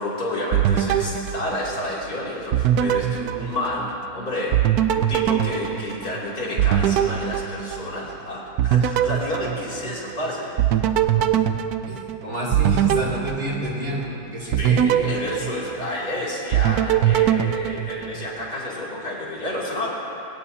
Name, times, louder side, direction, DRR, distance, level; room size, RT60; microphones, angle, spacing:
voice 1, 0.0-4.6 4.9-10.9 14.4-19.9, left 1 dB, 85° left, -6 dB, 3.7 m, -30 dB
sound 1, 0.5-2.1 2.5-4.1 4.5-8.2 8.6-10.2 10.6-14.1 14.5-16.1 16.5-18.5, right 10 dB, 85° right, 1.1 m, -22 dB
voice 2, 11.9-14.8, equal, 65° right, -6 dB, 3.3 m, -29 dB
22.0 x 17.5 x 2.9 m, 2.7 s
omnidirectional pair, 1.6 m